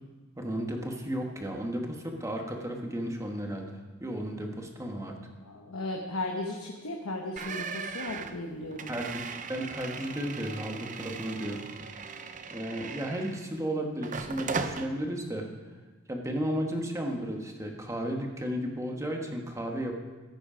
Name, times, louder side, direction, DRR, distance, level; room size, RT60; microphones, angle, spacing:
voice 1, 0.4-5.1 8.9-11.6 12.5-15.5 16.1-20.0, equal, 15° right, 2 dB, 1.4 m, -34 dB
voice 2, 5.4-8.9, left 2 dB, 75° left, 1 dB, 1.0 m, -36 dB
sound 1, 7.4-13.6 14.0-14.9, right 5 dB, 35° right, 0.6 m, -38 dB
14.5 x 8.3 x 5.1 m, 1.3 s
head